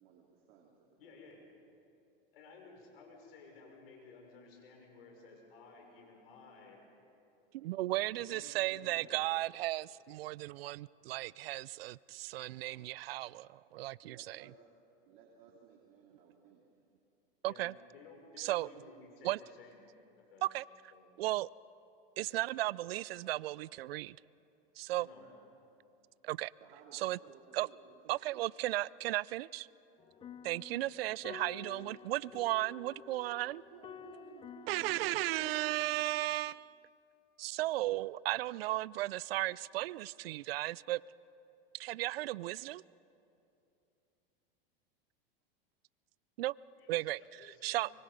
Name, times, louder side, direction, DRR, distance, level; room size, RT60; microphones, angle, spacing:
voice 1, 0.0-1.2 7.6-7.9 14.0-14.6 15.1-16.7 25.2-25.4 26.6-28.0 28.3-28.4 30.2-30.6 31.8-32.1 33.5-35.0, right 7 dB, 60° right, 2.9 m, -60 dB
voice 2, 1.0-1.5 2.3-6.8 8.1-9.2 17.4-19.9 20.2-20.5 20.9-21.1 24.9-25.2 46.8-47.9, left 4 dB, 75° left, 6.0 m, -56 dB
voice 3, 7.5-14.4 17.4-17.7 18.4-18.7 19.2-19.4 20.4-20.6 21.2-21.5 22.2-24.2 24.8-25.1 26.2-26.5 26.9-27.2 27.5-27.7 28.1-29.7 30.4-33.6 34.7-36.8 37.4-41.0 41.7-42.8 46.4-46.5 46.9-47.9, right 17 dB, 80° right, 0.4 m, -35 dB
sound 1, 30.0-36.6, left 9 dB, 20° left, 0.4 m, -52 dB
24.5 x 23.5 x 5.2 m
hypercardioid pair, 110°, 29 cm